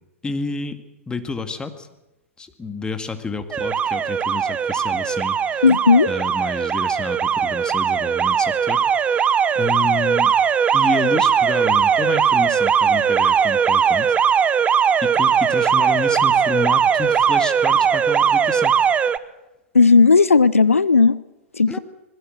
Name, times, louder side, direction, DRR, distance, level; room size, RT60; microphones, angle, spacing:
voice 1, 0.2-0.8 1.1-1.9 2.4-5.6 6.1-9.3 9.6-10.3 10.7-14.1 15.0-18.7 21.7-21.8, left 4 dB, 10° left, 8 dB, 2.1 m, -29 dB
Alarm, 3.5-19.2, right 7 dB, 15° right, 0.9 m, -19 dB
voice 2, 5.6-6.1 19.7-21.2 21.5-21.8, left 4 dB, 80° left, 19 dB, 0.7 m, -14 dB
25.5 x 21.5 x 6.6 m, 0.99 s
figure-of-eight pair, 105°, 7 cm